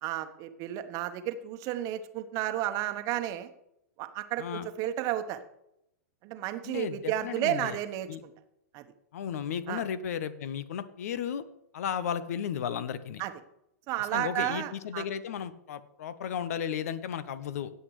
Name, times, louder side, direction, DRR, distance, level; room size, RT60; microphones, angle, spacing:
voice 1, 0.0-3.5 4.0-5.4 6.2-8.1 8.7-8.8 9.7-9.8 13.2-13.3 13.9-15.0, right 13 dB, 40° right, 9 dB, 1.1 m, -32 dB
voice 2, 6.6-7.8 8.1-8.2 9.1-11.4 11.7-13.2 14.0-17.7, left 8 dB, 65° left, 15 dB, 0.9 m, -34 dB
17.0 x 7.9 x 3.2 m, 0.81 s
hypercardioid pair, 110°, 9 cm